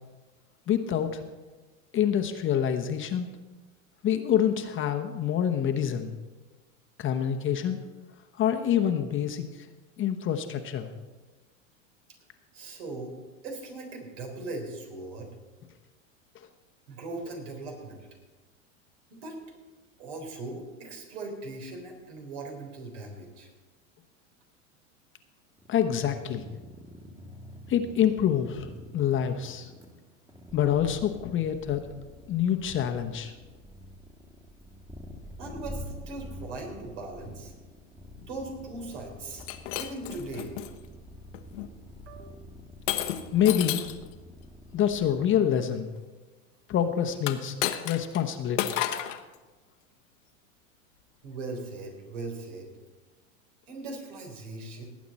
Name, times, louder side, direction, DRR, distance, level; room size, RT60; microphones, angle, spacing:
voice 1, 0.7-1.2 1.9-3.3 4.0-6.1 7.0-7.8 8.4-9.4 10.0-10.9 25.7-26.4 27.7-28.7 28.9-29.7 30.5-31.8 32.3-33.3 43.3-43.8 44.7-45.9 46.7-47.5 47.8-48.7, left 9 dB, 30° left, 6 dB, 1.0 m, -26 dB
voice 2, 12.5-13.1 13.4-15.3 16.9-18.1 19.1-19.4 20.0-23.5 35.4-37.5 38.2-39.4 39.7-40.6 42.1-42.4 51.2-52.7 53.7-54.8, right 2 dB, 70° right, 2 dB, 3.8 m, -39 dB
sound 1, 25.6-45.2, equal, 10° right, 1.7 m, -47 dB
Shatter, 39.3-40.7 41.3-41.7 42.9-44.0 47.2-48.2 48.6-49.2, left 12 dB, 65° left, 1.1 m, -31 dB
18.5 x 8.4 x 4.2 m, 1.3 s
hypercardioid pair, 105°, 39 cm